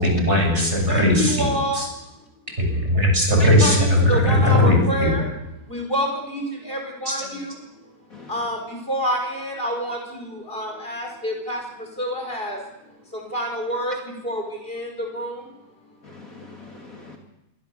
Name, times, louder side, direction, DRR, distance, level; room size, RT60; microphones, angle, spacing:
voice 1, 0.0-1.5 2.7-5.2 7.1-7.3, left 1 dB, 30° right, 2 dB, 7.6 m, -18 dB
voice 2, 0.9-1.8 3.4-5.2 5.7-6.1 6.3-6.4 6.7-7.2 8.3-8.6 8.9-10.0 10.5-11.6 12.0-12.6 13.3-13.9 14.2-14.4 14.7-15.4, equal, 25° left, 1 dB, 5.5 m, -27 dB
voice 3, 8.1-8.4 16.0-17.2, left 2 dB, 40° left, 1 dB, 3.3 m, -40 dB
27.0 x 25.0 x 6.9 m, 0.89 s
omnidirectional pair, 2.2 m